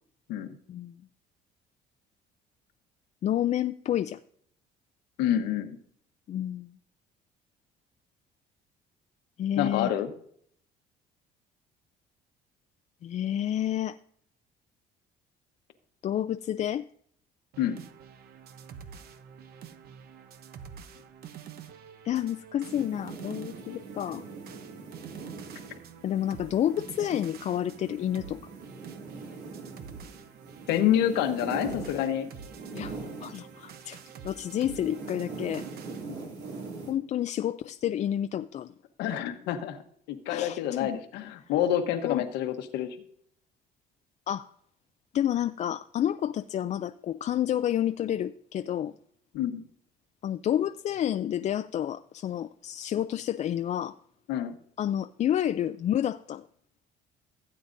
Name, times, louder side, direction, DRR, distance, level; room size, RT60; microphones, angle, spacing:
voice 1, 0.7-1.0 3.2-4.2 6.3-6.7 9.4-9.9 13.0-14.0 16.0-16.9 22.0-24.3 26.0-28.4 32.7-32.9 33.2-35.7 36.9-38.7 40.3-40.9 42.0-42.2 44.3-44.5 45.1-49.0 50.2-54.0 54.8-56.4, left 11 dB, 45° left, 0.4 m, -29 dB
voice 2, 5.2-5.7 9.6-10.1 17.6-17.8 30.7-32.3 39.0-39.8 40.1-43.0 49.3-49.6 54.3-54.6, left 10 dB, 90° left, 1.1 m, -27 dB
sound 1, 17.5-36.1, right 7 dB, 65° right, 0.9 m, -48 dB
sound 2, 22.7-33.8 34.0-36.9, right 4 dB, 85° right, 2.5 m, -42 dB
16.0 x 8.6 x 2.6 m
cardioid pair, 110°, 17 cm